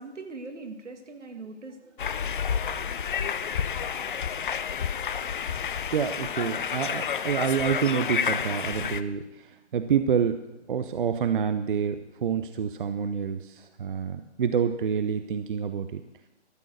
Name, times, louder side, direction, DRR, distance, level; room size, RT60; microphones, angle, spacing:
voice 1, 0.0-2.3, right 3 dB, 80° right, 5 dB, 2.0 m, -42 dB
sound 1, 2.0-9.0, left 7 dB, 45° left, 0.6 m, -30 dB
voice 2, 5.9-10.4 10.7-16.0, right 7 dB, 45° right, 9 dB, 0.7 m, -28 dB
13.0 x 7.3 x 6.5 m, 0.99 s
hypercardioid pair, 150°, 36 cm